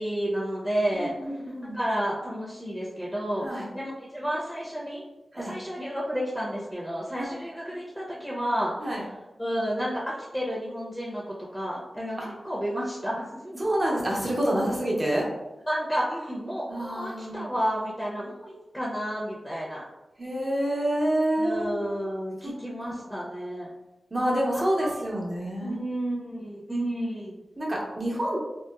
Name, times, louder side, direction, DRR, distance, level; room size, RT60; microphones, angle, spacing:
voice 1, 0.0-1.1 1.7-5.0 5.3-9.0 9.4-13.6 15.7-19.8 21.4-23.7 24.5-25.0 25.6-27.4, equal, ahead, -6 dB, 0.6 m, -31 dB
voice 2, 0.9-1.8 3.4-3.7 5.3-5.5 7.2-7.3 8.8-9.0 12.2-12.3 13.6-15.3 16.7-17.4 20.2-21.9 22.4-22.5 22.8-22.9 24.1-25.8 27.6-28.4, right 1 dB, 40° right, -3 dB, 0.8 m, -27 dB
2.8 x 2.0 x 2.3 m, 1.0 s
cardioid pair, 45°, 0 cm